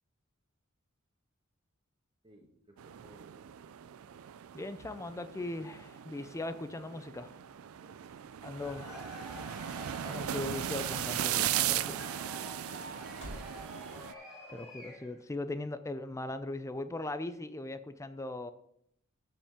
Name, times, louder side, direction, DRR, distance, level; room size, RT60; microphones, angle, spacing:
voice 1, 2.2-3.3 7.8-8.0, right 2 dB, 25° right, 1 dB, 1.6 m, -60 dB
sound 1, 2.8-14.1, right 11 dB, 75° right, 0.4 m, -37 dB
voice 2, 4.5-7.3 8.4-8.9 10.0-12.2 14.5-18.5, left 2 dB, 15° left, 11 dB, 0.4 m, -39 dB
sound 2, 7.3-13.6, equal, 30° left, 3.3 m, -56 dB
Cheering / Crowd, 8.5-15.3, equal, ahead, 2.5 m, -48 dB
13.5 x 5.2 x 3.6 m, 0.73 s
head